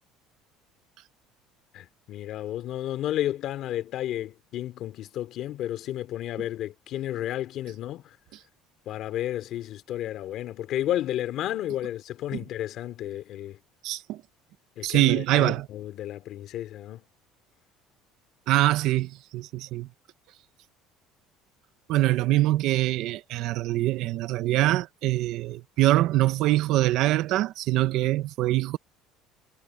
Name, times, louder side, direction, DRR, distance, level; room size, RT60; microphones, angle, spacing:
voice 1, 1.7-8.2 8.9-13.6 14.8-17.0, left 12 dB, 50° left, 2.6 m, -32 dB
voice 2, 13.8-14.2 14.8-15.7 18.5-19.9 21.9-28.8, right 16 dB, 55° right, 0.7 m, -24 dB
cardioid pair, 160°, 0 cm